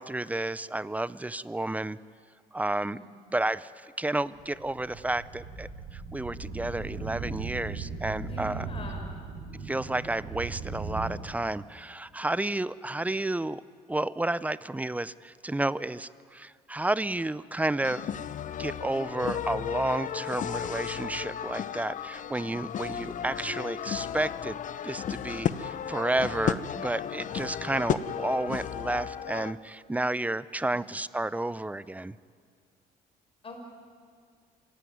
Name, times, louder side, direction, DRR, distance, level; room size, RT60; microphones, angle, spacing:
voice 1, 0.0-2.0 2.5-3.0 3.3-8.6 9.6-13.6 13.9-18.1 18.6-24.6 24.8-32.2, right 2 dB, 10° right, 18 dB, 0.5 m, -31 dB
voice 2, 2.8-3.3 8.2-9.2 33.4-33.7, left 1 dB, 35° left, 2 dB, 5.7 m, -44 dB
sound 1, 4.3-11.2, right 4 dB, 85° right, 5.5 m, -38 dB
sound 2, 17.8-29.5, left 9 dB, 50° left, 0.9 m, -34 dB
26.5 x 16.5 x 9.3 m, 2.1 s
cardioid pair, 110°, 17 cm